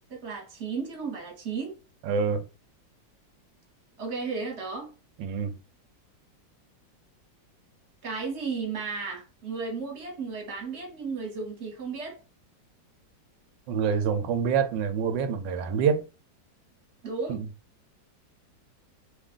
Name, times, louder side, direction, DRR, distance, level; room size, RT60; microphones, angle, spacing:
voice 1, 0.1-1.8 4.0-4.9 8.0-12.2 17.0-17.4, right 4 dB, 40° right, 1.3 m, -34 dB
voice 2, 2.0-2.4 5.2-5.5 13.7-16.0 17.3-17.5, right 6 dB, 80° right, 1.3 m, -26 dB
3.2 x 2.5 x 3.6 m
omnidirectional pair, 2.0 m